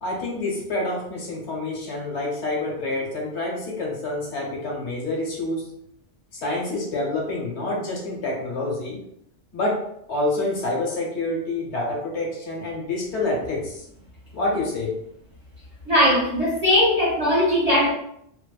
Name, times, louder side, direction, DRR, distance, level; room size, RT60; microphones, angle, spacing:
voice 1, 0.0-5.6 6.3-9.0 9.5-9.8 10.1-13.8 14.3-14.9, left 2 dB, 70° left, -2 dB, 1.0 m, -27 dB
voice 2, 15.9-17.9, left 1 dB, 35° right, -8 dB, 0.9 m, -19 dB
2.7 x 2.0 x 2.3 m, 0.75 s
omnidirectional pair, 1.2 m